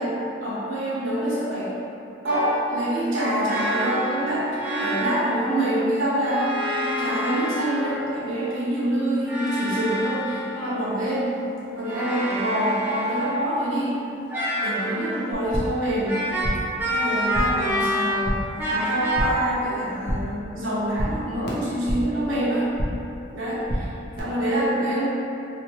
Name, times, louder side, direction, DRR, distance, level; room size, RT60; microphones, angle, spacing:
voice 1, 0.0-1.7 2.2-6.5 7.0-11.3 11.7-14.0 14.6-16.2 16.9-22.7 23.3-23.9 24.2-25.0, right 1 dB, 80° right, -8 dB, 0.8 m, -26 dB
sound 1, 2.3-2.7 3.5-5.4 6.2-8.2 9.2-10.8 11.8-13.6 14.3-15.2 16.1-18.3 18.6-19.2, equal, 10° right, 0.3 m, -28 dB
sound 2, 15.3-15.9 16.1-16.8 17.1-17.7 18.0-18.6 18.9-19.5 19.8-20.4 20.7-22.2 22.5-23.1 23.4-24.2, equal, 50° left, 0.5 m, -30 dB
2.9 x 2.3 x 3.0 m, 2.7 s
head